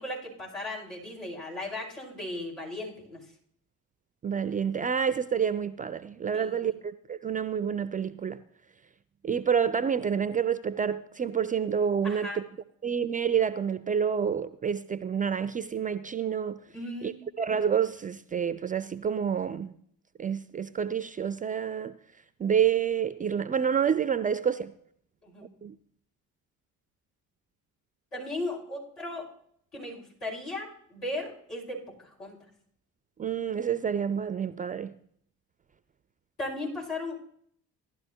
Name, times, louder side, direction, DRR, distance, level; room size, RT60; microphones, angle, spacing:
voice 1, 0.0-3.2 6.3-6.8 12.0-12.4 16.7-17.2 25.2-25.5 28.1-29.2 29.7-32.4 36.4-37.3, left 2 dB, 80° left, 4.5 m, -37 dB
voice 2, 4.2-8.4 9.2-12.4 12.8-16.6 17.0-19.7 20.2-22.0 22.4-24.7 25.6-25.8 33.2-34.9, right 7 dB, 20° right, 0.4 m, -28 dB
16.5 x 12.0 x 2.8 m
figure-of-eight pair, 45°, 44 cm